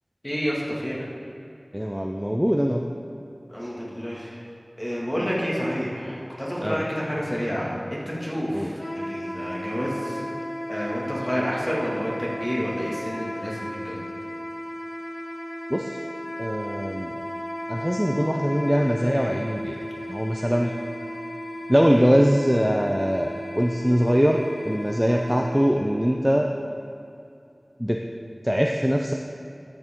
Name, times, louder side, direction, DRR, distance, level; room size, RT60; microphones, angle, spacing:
voice 1, 0.2-1.0 3.5-4.4 4.8-10.2 10.7-14.0, equal, 15° left, -5 dB, 2.3 m, -29 dB
voice 2, 1.7-2.8 6.6-6.8 8.5-8.7 15.7-16.0 16.4-17.1 17.7-19.8 20.1-20.7 21.7-24.4 24.6-26.5 27.8-28.0 28.4-29.1, equal, 5° right, 1 dB, 0.5 m, -22 dB
Wind instrument woodwind instrument, 8.8-25.6, equal, 70° left, 1.8 m, -35 dB
12.0 x 7.2 x 3.8 m, 2.6 s
wide cardioid pair, 50°, 0 cm